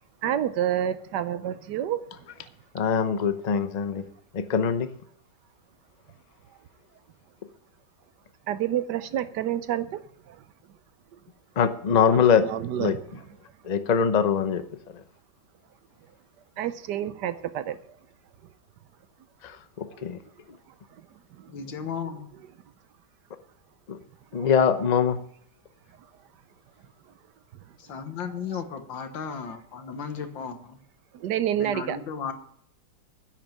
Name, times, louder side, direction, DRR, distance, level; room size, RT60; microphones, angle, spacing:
voice 1, 0.2-2.0 8.5-10.4 12.1-13.2 16.6-17.8 20.0-20.1 21.0-21.1 21.3-22.5 24.3-24.9 28.3-28.6 31.2-32.0, right 11 dB, 70° right, 13 dB, 1.2 m, -30 dB
voice 2, 2.7-4.0 4.3-4.9 11.6-12.4 12.8-12.9 13.6-14.6 19.4-20.2 23.9-24.0 24.3-25.2, left 7 dB, 50° left, 10 dB, 0.5 m, -23 dB
voice 3, 21.5-22.3 27.8-30.8 31.6-32.3, left 6 dB, 85° left, 8 dB, 2.0 m, -35 dB
10.5 x 8.8 x 7.2 m, 0.66 s
omnidirectional pair, 2.0 m